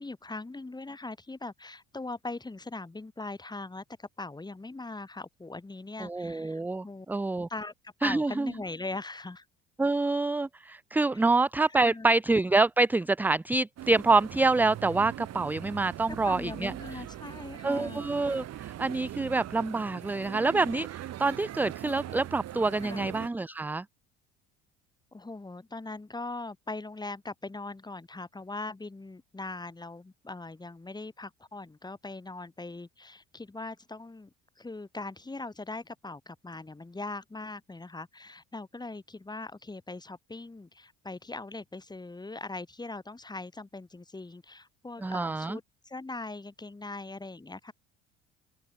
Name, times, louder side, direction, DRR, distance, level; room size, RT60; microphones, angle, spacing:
voice 1, 0.0-7.1 7.5-9.5 11.1-11.3 11.7-12.1 16.2-18.0 22.8-23.1 25.1-34.3 34.6-47.7, left 2 dB, 15° left, 2.0 m, -40 dB
voice 2, 6.0-7.5 8.0-8.5 9.8-17.0 17.6-23.8 45.0-45.6, right 3 dB, 5° right, 0.4 m, -27 dB
sound 1, 13.8-23.3, right 12 dB, 55° right, 1.9 m, -41 dB
open air
supercardioid pair, 80°, 32 cm